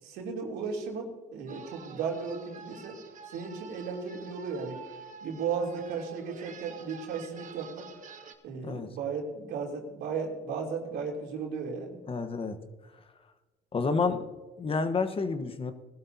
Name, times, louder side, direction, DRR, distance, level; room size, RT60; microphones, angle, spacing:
voice 1, 0.0-3.0 3.2-4.8 5.2-7.9 8.4-12.0, right 5 dB, 85° right, 0 dB, 3.1 m, -35 dB
sound 1, 1.5-8.3, right 6 dB, 50° right, 1.4 m, -48 dB
voice 2, 12.1-12.6 13.7-14.2 14.6-15.7, left 4 dB, 35° left, 8 dB, 1.2 m, -29 dB
20.0 x 12.0 x 2.8 m, 1.2 s
cardioid pair, 110°, 17 cm